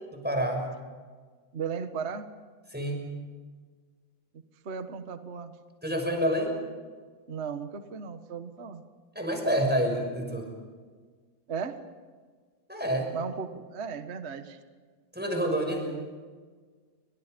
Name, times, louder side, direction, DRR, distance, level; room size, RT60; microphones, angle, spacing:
voice 1, 0.1-0.7 2.7-3.0 5.8-6.5 9.1-10.5 12.7-13.1 15.1-15.9, equal, 5° right, 2 dB, 6.2 m, -28 dB
voice 2, 1.5-2.3 4.6-5.5 7.3-8.8 11.5-11.7 13.1-14.6 15.8-16.1, right 6 dB, 50° right, 8 dB, 0.8 m, -36 dB
30.0 x 25.5 x 5.3 m, 1.5 s
omnidirectional pair, 3.5 m